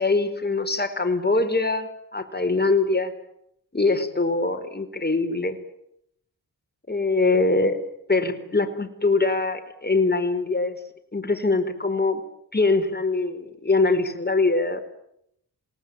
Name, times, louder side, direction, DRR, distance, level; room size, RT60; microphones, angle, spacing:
voice 1, 0.0-3.1 3.7-5.6 6.9-7.8 8.1-10.8 11.1-12.2 12.5-14.8, left 3 dB, 25° left, 7 dB, 4.8 m, -23 dB
27.5 x 19.5 x 9.3 m, 0.77 s
cardioid pair, 50°, 40 cm